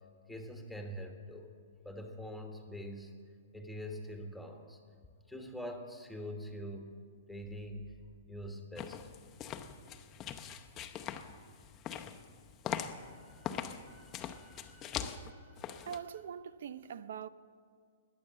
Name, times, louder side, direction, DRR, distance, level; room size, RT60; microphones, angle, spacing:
voice 1, 0.3-1.5 1.8-3.1 3.5-4.8 5.3-7.0 7.3-8.0 8.3-9.0 12.8-15.9, equal, ahead, 1.4 m, -45 dB
sound 1, 8.8-16.0, left 9 dB, 20° left, 0.7 m, -42 dB
voice 2, 15.8-17.3, right 8 dB, 65° right, 0.6 m, -43 dB
21.0 x 8.3 x 7.5 m
hypercardioid pair, 155°, 0 cm